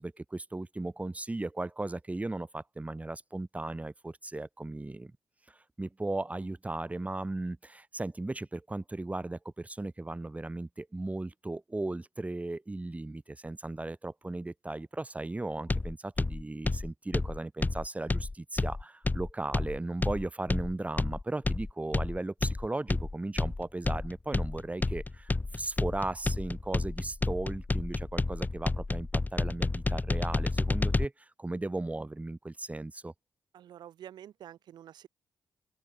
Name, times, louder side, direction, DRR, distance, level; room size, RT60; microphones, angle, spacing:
voice 1, 0.0-5.1 5.5-33.1, right 2 dB, 20° right, 1.4 m, -36 dB
sound 1, 15.7-31.0, left 3 dB, 25° left, 1.1 m, -30 dB
voice 2, 33.5-35.1, right 10 dB, 80° right, 4.2 m, -48 dB
open air
cardioid pair, 60°, 7 cm